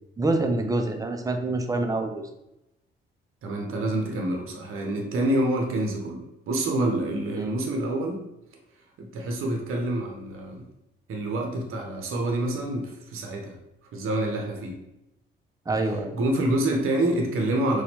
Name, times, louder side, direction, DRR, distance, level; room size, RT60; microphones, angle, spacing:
voice 1, 0.2-2.2 7.3-7.5 15.7-16.2, right 2 dB, 10° right, 5 dB, 0.5 m, -26 dB
voice 2, 3.4-8.2 9.0-10.7 11.1-13.6 13.9-14.8 16.1-17.8, right 1 dB, 45° right, 2 dB, 0.8 m, -27 dB
4.1 x 2.3 x 2.8 m, 0.88 s
figure-of-eight pair, 45°, 29 cm